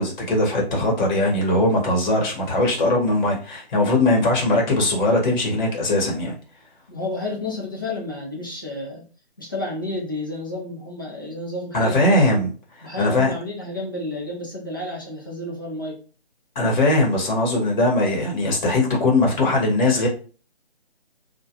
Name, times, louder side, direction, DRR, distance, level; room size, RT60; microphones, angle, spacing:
voice 1, 0.0-6.4 11.7-12.5 12.8-13.3 16.5-20.1, left 2 dB, 45° left, -1 dB, 0.9 m, -20 dB
voice 2, 6.9-9.1 9.4-12.3 12.8-16.0, left 2 dB, 20° left, -3 dB, 0.4 m, -31 dB
2.3 x 2.2 x 2.8 m, 0.38 s
figure-of-eight pair, 155°, 32 cm